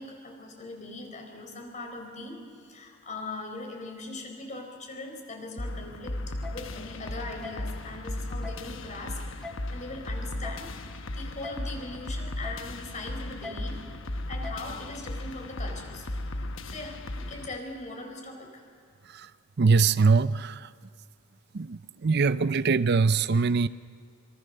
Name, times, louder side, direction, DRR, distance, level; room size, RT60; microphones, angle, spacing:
voice 1, 0.0-9.2 9.7-10.7 11.1-13.8 14.3-16.1 16.6-18.6, left 2 dB, 40° left, 3 dB, 4.7 m, -40 dB
sound 1, 5.6-17.6, left 1 dB, 80° left, 1.1 m, -36 dB
sound 2, 6.4-6.5 7.4-7.5 8.4-8.6 9.4-9.5 10.4-10.6 11.4-11.6 12.4-12.6 13.4-13.6 14.4-14.6, left 4 dB, 5° left, 2.0 m, -39 dB
voice 2, 19.6-20.7 21.5-23.7, right 4 dB, 55° right, 14 dB, 0.5 m, -23 dB
26.0 x 24.0 x 6.7 m, 2.3 s
head